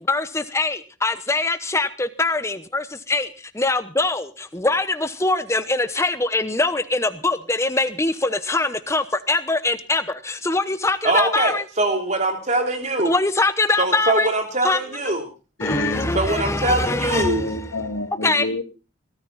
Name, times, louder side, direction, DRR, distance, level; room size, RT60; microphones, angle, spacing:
voice 1, 0.1-11.6 13.0-14.3 14.6-14.8 15.6-17.6 18.2-18.5, left 2 dB, 15° left, 12 dB, 0.9 m, -23 dB
voice 2, 11.0-13.1 13.8-15.3 16.1-17.4, right 2 dB, 35° right, 4 dB, 3.4 m, -22 dB
voice 3, 15.6-16.1 17.1-18.6, left 2 dB, 75° left, 6 dB, 2.4 m, -27 dB
20.0 x 13.5 x 4.1 m, 0.33 s
head